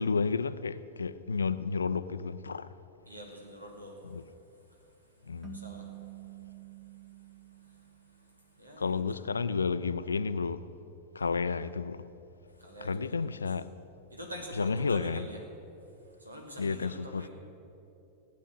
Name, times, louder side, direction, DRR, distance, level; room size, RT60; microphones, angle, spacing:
voice 1, 0.0-2.7 4.1-4.2 5.3-5.6 8.8-10.6 11.1-12.1 12.8-13.7 14.5-15.2 16.6-17.3, left 5 dB, 75° left, 0.5 m, -31 dB
voice 2, 3.1-4.0 5.5-5.9 8.6-9.0 12.6-13.4 14.1-15.4 16.2-17.3, equal, 80° right, 2.6 m, -44 dB
sound 1, 5.4-8.6, right 10 dB, 20° right, 1.6 m, -48 dB
16.0 x 8.5 x 9.1 m
figure-of-eight pair, 90°, 0 cm